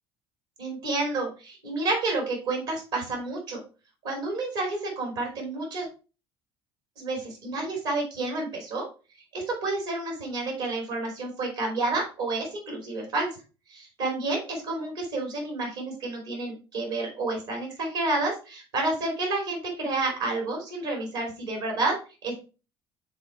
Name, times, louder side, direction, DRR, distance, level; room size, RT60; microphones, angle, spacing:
voice 1, 0.6-3.6 4.0-5.9 7.0-8.9 9.3-13.4 13.7-22.0 22.2-22.3, right 2 dB, 75° right, 0 dB, 2.8 m, -30 dB
5.9 x 3.8 x 4.3 m, 0.33 s
hypercardioid pair, 60°, 13 cm